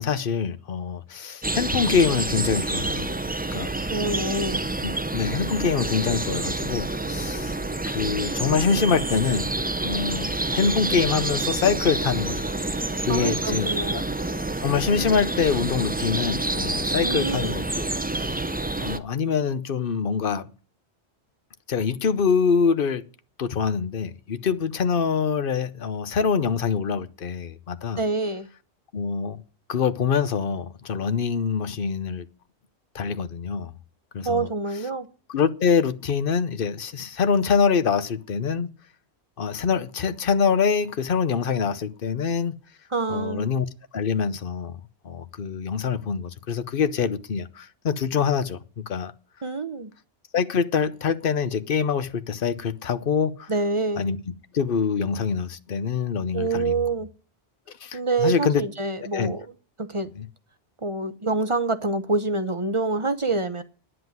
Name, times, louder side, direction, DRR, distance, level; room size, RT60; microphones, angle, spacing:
voice 1, 0.0-3.1 3.5-3.7 4.8-7.6 7.9-9.6 9.8-12.5 13.0-14.0 14.6-17.9 18.2-18.4 18.8-20.5 21.7-23.1 23.4-28.0 28.9-29.4 29.7-32.3 32.9-33.7 34.1-34.5 35.3-38.7 39.4-42.5 43.1-43.7 43.9-48.6 48.9-49.1 50.3-53.5 54.0-54.2 54.5-56.8 57.8-58.6 59.1-59.3 60.2-60.3, left 6 dB, 55° left, 1.0 m, -25 dB
sound 1, 1.4-19.0, right 2 dB, 15° right, 0.4 m, -28 dB
voice 2, 3.9-4.6 13.1-14.0 17.0-17.5 28.0-28.5 34.2-35.1 42.9-43.5 49.4-49.9 53.5-54.0 56.3-57.1 57.9-59.5 59.8-60.1 60.8-63.6, right 3 dB, 30° right, 0.9 m, -26 dB
10.0 x 7.9 x 9.3 m
omnidirectional pair, 1.1 m